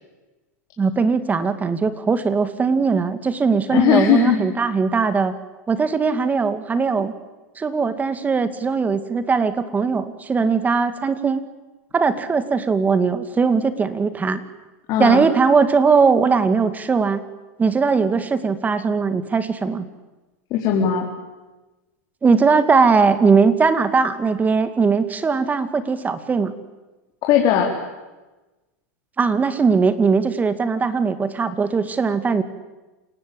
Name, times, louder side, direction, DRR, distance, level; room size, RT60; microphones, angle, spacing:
voice 1, 0.8-5.3 5.7-7.1 7.6-11.5 11.9-14.4 15.0-17.2 17.6-19.9 22.2-26.6 29.2-32.4, right 5 dB, 20° right, 11 dB, 2.2 m, -19 dB
voice 2, 3.7-4.4 14.9-15.2 20.5-21.1 27.3-27.7, left 9 dB, 45° left, 0 dB, 4.2 m, -18 dB
28.5 x 18.0 x 8.8 m, 1.2 s
hypercardioid pair, 115°, 9 cm